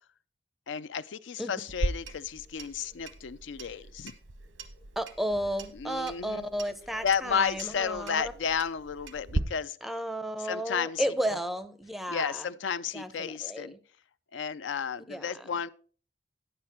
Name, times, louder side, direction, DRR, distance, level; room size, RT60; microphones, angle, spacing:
voice 1, 0.7-4.1 5.8-6.4 7.0-9.8 10.5-11.0 12.1-13.7 14.3-15.7, left 7 dB, 75° left, 0.4 m, -32 dB
Clock, 1.7-9.4, right 2 dB, 90° right, 1.1 m, -38 dB
voice 2, 5.0-8.2 9.8-12.5 12.9-13.8 15.1-15.5, equal, ahead, 0.5 m, -33 dB
9.7 x 7.5 x 4.4 m
head